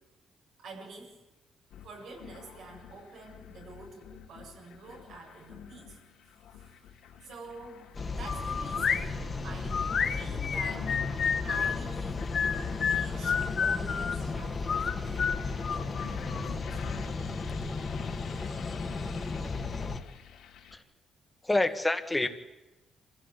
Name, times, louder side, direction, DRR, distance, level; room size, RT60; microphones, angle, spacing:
voice 1, 0.6-1.1 1.8-6.0 6.3-6.9 7.2-7.9 8.2-9.9 10.1-12.3 12.8-15.3 15.7-16.2 16.4-17.0, right 3 dB, 75° right, -1 dB, 7.8 m, -48 dB
sound 1, 1.7-20.8, left 8 dB, 90° left, 3.5 m, -50 dB
sound 2, 7.9-20.0, left 4 dB, 30° left, 1.9 m, -35 dB
sound 3, 8.2-9.1 9.7-11.8 12.3-14.2 14.7-16.5, left 6 dB, 50° left, 1.3 m, -30 dB
voice 2, 21.4-22.3, left 2 dB, 15° left, 7 dB, 1.8 m, -27 dB
26.5 x 16.0 x 8.6 m, 1.0 s
cardioid pair, 90°, 0 cm